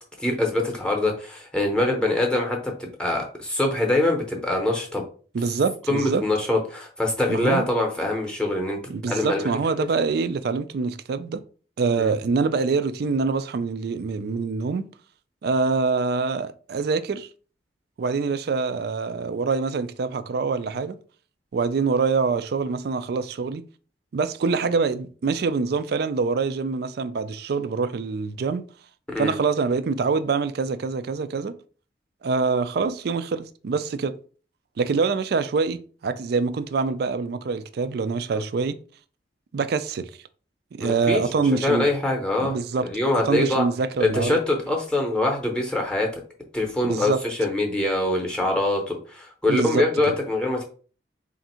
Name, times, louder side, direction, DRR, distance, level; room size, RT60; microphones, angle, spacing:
voice 1, 0.2-5.0 5.9-8.8 9.1-9.9 12.0-12.1 29.1-29.4 38.3-38.4 40.8-41.2 41.6-42.6 42.8-43.6 44.0-46.1 46.5-50.6, left 2 dB, 5° left, 0.7 m, -24 dB
voice 2, 5.3-6.2 7.3-7.7 8.9-11.4 11.8-14.9 15.4-17.3 18.0-21.0 21.5-23.6 24.1-28.6 29.2-31.5 32.2-34.1 34.8-38.8 39.5-40.1 40.7-41.9 42.4-42.9 43.3-44.4 46.8-47.2 49.5-50.1, right 4 dB, 60° right, 0.4 m, -25 dB
3.5 x 2.5 x 4.2 m
head